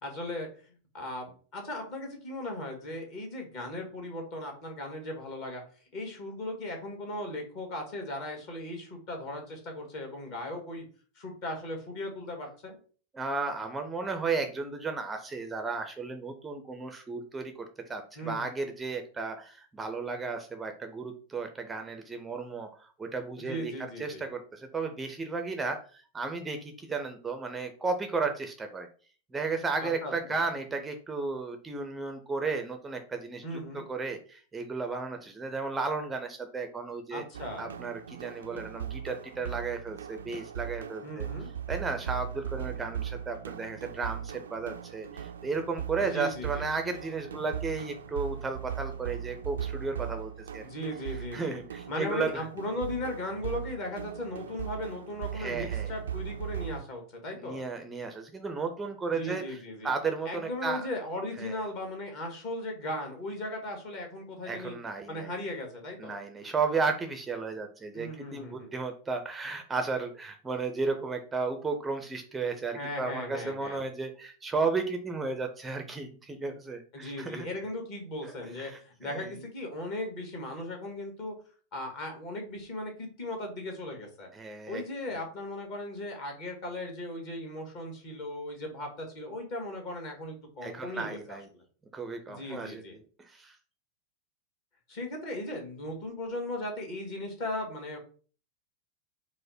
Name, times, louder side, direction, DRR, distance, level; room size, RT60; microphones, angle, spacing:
voice 1, 0.0-0.5 0.9-5.6 5.9-10.8 11.1-12.8 18.1-18.4 23.4-24.2 29.8-30.4 33.4-33.8 37.1-37.7 41.0-41.5 46.0-46.6 50.6-51.6 51.9-57.6 59.1-59.9 60.2-64.7 65.1-66.2 67.9-68.7 72.7-73.8 76.9-81.3 81.7-84.3 84.7-91.4 92.3-93.0 94.9-98.0, left 1 dB, 45° left, 2 dB, 1.6 m, -37 dB
voice 2, 13.1-28.9 29.3-37.2 37.6-41.3 41.7-50.7 51.1-52.4 55.3-55.9 57.4-60.9 61.4-61.5 64.5-65.3 66.0-77.5 78.2-78.3 78.6-79.3 84.3-84.8 90.6-91.5 91.9-93.6, right 4 dB, 15° right, 6 dB, 0.5 m, -34 dB
sound 1, 37.3-56.8, right 9 dB, 65° right, 0.4 m, -39 dB
4.7 x 2.1 x 4.2 m, 0.40 s
figure-of-eight pair, 90°, 0 cm